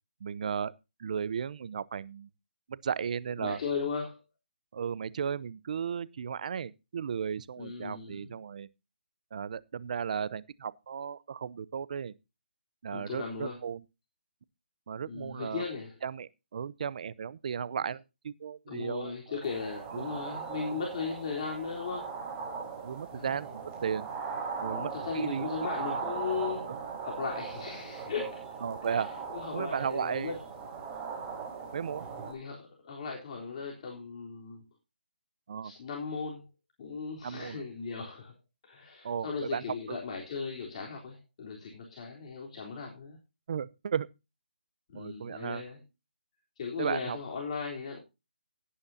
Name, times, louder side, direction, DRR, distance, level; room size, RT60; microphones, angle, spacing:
voice 1, 0.2-0.7 1.0-2.3 2.7-3.6 4.7-8.7 9.3-12.1 12.8-13.8 14.9-15.7 16.0-19.4 19.9-20.1 22.8-24.1 24.6-25.5 26.7-26.8 28.6-29.1 29.5-30.3 31.7-32.0 35.5-35.7 37.2-37.6 39.0-39.6 39.9-40.0 43.5-44.1 44.9-45.6 46.8-47.2, right 7 dB, 45° right, 0.8 m, -35 dB
voice 2, 3.4-4.2 7.6-8.3 12.9-13.6 15.0-16.0 18.7-22.2 23.1-23.4 24.7-28.5 28.8-30.4 32.2-34.7 35.6-36.4 36.8-38.3 38.6-43.2 44.9-45.8 46.6-48.0, left 5 dB, 35° left, 3.7 m, -37 dB
sound 1, 19.4-32.3, right 5 dB, 15° right, 4.5 m, -39 dB
17.0 x 9.7 x 2.8 m
hypercardioid pair, 160°, 6 cm